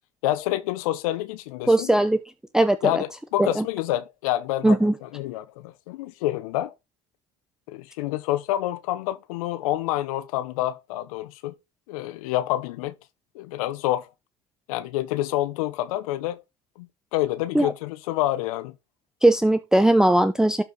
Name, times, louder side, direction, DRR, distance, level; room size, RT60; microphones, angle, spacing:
voice 1, 0.2-1.9 2.8-6.7 7.7-11.5 11.9-12.9 13.3-14.1 14.7-16.4 16.8-18.7, left 15 dB, 80° left, 0.8 m, -28 dB
voice 2, 1.7-2.2 2.5-3.0 3.4-3.6 4.6-4.9 17.5-17.7 19.2-20.6, right 1 dB, 5° right, 0.6 m, -19 dB
12.0 x 4.6 x 4.0 m
supercardioid pair, 95°, 18 cm